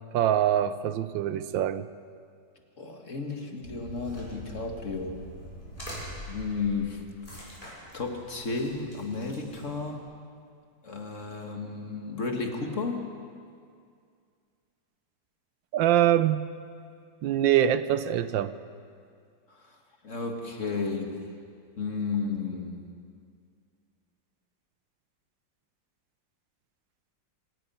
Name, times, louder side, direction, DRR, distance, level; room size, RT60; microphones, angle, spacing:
voice 1, 0.1-1.9 15.7-16.4 17.2-18.5, right 11 dB, 85° right, 13 dB, 1.5 m, -24 dB
voice 2, 2.8-5.2 6.3-7.7 7.9-10.1 10.8-13.0 19.6-19.8 20.0-21.2 21.8-22.9, left 4 dB, 40° left, 3 dB, 2.1 m, -33 dB
sound 1, 3.6-10.0, equal, 20° left, 6.5 m, -44 dB
25.0 x 18.5 x 5.6 m, 2.2 s
omnidirectional pair, 2.0 m